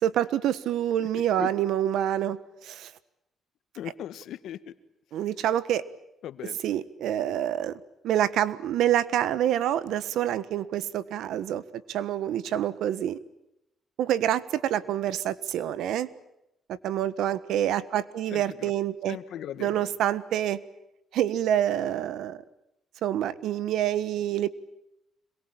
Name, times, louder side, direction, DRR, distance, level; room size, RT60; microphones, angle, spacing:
voice 1, 0.0-2.9 5.1-5.8 6.6-11.6 11.9-13.2 14.0-16.1 16.8-19.2 19.6-20.6 21.1-22.4 23.0-24.5, right 11 dB, 80° right, 17 dB, 1.4 m, -27 dB
voice 2, 3.7-4.7 6.2-6.6 18.3-18.7 19.1-19.9, left 11 dB, 75° left, 13 dB, 1.6 m, -38 dB
26.5 x 22.5 x 8.9 m, 0.84 s
cardioid pair, 90°, 0 cm